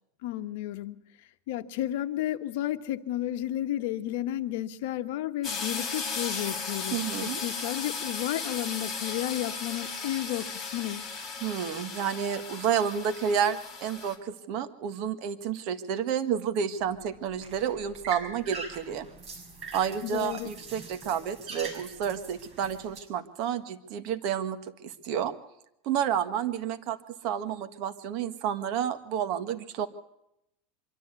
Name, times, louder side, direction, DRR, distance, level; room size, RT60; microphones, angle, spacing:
voice 1, 0.2-11.1 20.0-20.5, left 13 dB, 70° left, 10 dB, 1.2 m, -32 dB
sound 1, 5.4-14.2, left 4 dB, 15° left, 3.7 m, -36 dB
voice 2, 6.9-7.4 11.4-19.1 19.7-25.3 25.8-27.0 27.2-29.9, right 8 dB, 50° right, 9 dB, 1.6 m, -30 dB
sound 2, 16.8-23.0, right 4 dB, 30° right, 6.5 m, -43 dB
24.5 x 13.0 x 8.2 m, 0.82 s
supercardioid pair, 140°, 0 cm